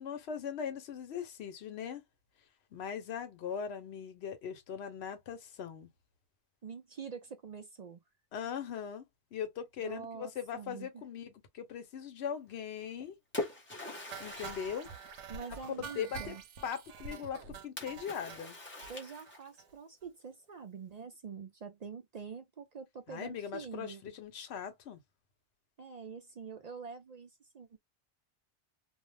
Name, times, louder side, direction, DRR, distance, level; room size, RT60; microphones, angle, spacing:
voice 1, 0.0-2.0 2.7-5.9 8.3-9.0 9.3-13.2 14.2-14.9 15.8-16.3 16.6-18.6 23.1-25.0, left 8 dB, 70° left, 1.0 m, -40 dB
voice 2, 6.6-8.0 9.8-11.0 15.3-16.4 18.9-24.0 25.8-27.8, right 6 dB, 55° right, 0.4 m, -46 dB
Splash splatter, 12.8-16.0 17.8-19.7, left 1 dB, 10° left, 0.8 m, -43 dB
sound 1, 14.1-18.4 18.8-18.9 19.3-19.4 19.6-19.7 20.0-20.1, right 6 dB, 90° right, 0.9 m, -46 dB
2.4 x 2.0 x 3.2 m
omnidirectional pair, 1.2 m